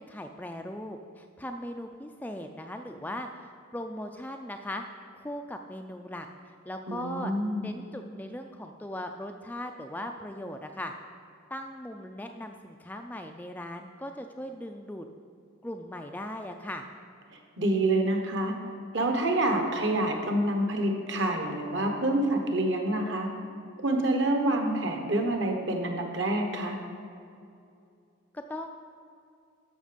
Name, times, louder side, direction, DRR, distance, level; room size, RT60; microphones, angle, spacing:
voice 1, 0.0-4.8 5.1-7.3 7.6-10.9 11.5-15.1 15.6-16.9 28.3-28.7, left 1 dB, 10° left, 4 dB, 0.3 m, -39 dB
voice 2, 6.9-7.7 17.6-18.6 18.9-23.3 23.8-26.8, right 1 dB, 60° right, 3 dB, 1.2 m, -27 dB
13.0 x 5.9 x 5.1 m, 2.4 s
head